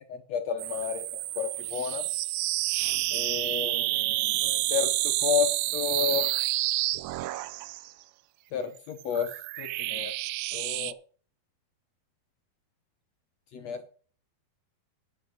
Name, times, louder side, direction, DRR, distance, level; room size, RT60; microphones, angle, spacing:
voice 1, 0.1-2.0 3.1-6.3 8.5-9.3 9.6-10.1 10.5-10.9 13.5-13.9, left 8 dB, 70° left, 6 dB, 1.6 m, -31 dB
sound 1, 0.6-7.9 8.8-10.9, right 17 dB, 85° right, 2.5 m, -29 dB
11.0 x 7.0 x 6.6 m, 0.41 s
omnidirectional pair, 4.5 m